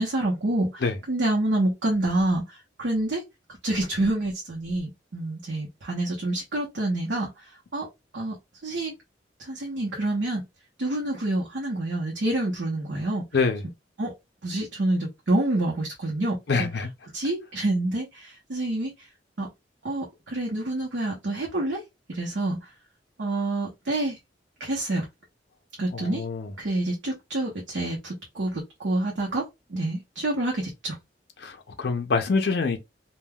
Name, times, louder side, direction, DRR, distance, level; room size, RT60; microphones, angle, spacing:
voice 1, 0.0-2.4 2.8-3.2 3.6-7.3 7.7-7.9 8.1-8.4 8.6-8.9 9.4-10.4 10.8-13.2 14.0-14.1 14.4-16.7 17.1-18.9 19.4-19.5 19.8-21.8 22.1-22.6 23.2-24.2 24.6-25.0 25.8-26.2 26.6-29.4 29.7-31.0, right 1 dB, 80° right, 0.8 m, -27 dB
voice 2, 16.5-16.9 25.9-26.5 31.4-32.8, left 4 dB, 60° left, 0.5 m, -25 dB
3.4 x 2.2 x 2.2 m
head